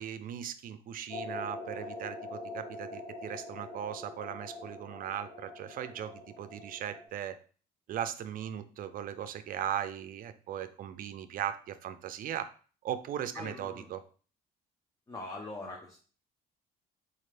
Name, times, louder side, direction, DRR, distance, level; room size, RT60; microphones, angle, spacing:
voice 1, 0.0-7.4 7.9-12.5 12.8-14.0, right 10 dB, 55° right, 12 dB, 0.4 m, -38 dB
sound 1, 1.1-7.1, left 2 dB, 90° left, 0.9 m, -44 dB
voice 2, 13.3-13.9 15.1-16.0, left 2 dB, 20° left, -1 dB, 0.7 m, -42 dB
4.2 x 2.4 x 3.3 m, 0.39 s
cardioid pair, 110°, 17 cm